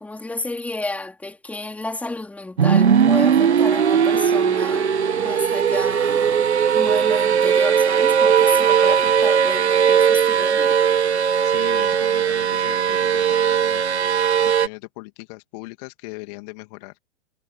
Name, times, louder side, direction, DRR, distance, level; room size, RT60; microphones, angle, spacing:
voice 1, 0.0-6.5 6.7-10.8, left 2 dB, 5° left, 4.0 m, -31 dB
sound 1, 2.6-14.7, right 7 dB, 65° right, 1.8 m, -18 dB
voice 2, 11.4-14.0 14.4-17.0, left 27 dB, 35° left, 2.7 m, -39 dB
figure-of-eight pair, 115°, 36 cm